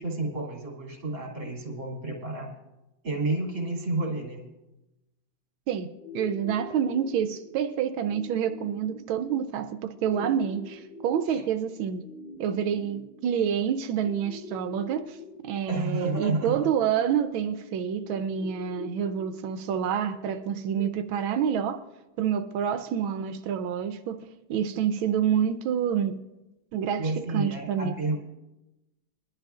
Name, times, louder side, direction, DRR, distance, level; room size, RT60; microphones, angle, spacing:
voice 1, 0.0-2.5 3.0-4.5 11.3-11.4 15.7-16.5 27.0-28.2, right 2 dB, 35° right, 2.8 m, -30 dB
sound 1, 6.0-22.0, left 3 dB, 30° left, 3.1 m, -45 dB
voice 2, 6.1-12.0 12.4-15.2 15.4-21.8 22.2-24.2 24.5-26.2 26.7-27.9, right 8 dB, 80° right, 1.4 m, -28 dB
22.0 x 11.5 x 2.4 m
omnidirectional pair, 2.2 m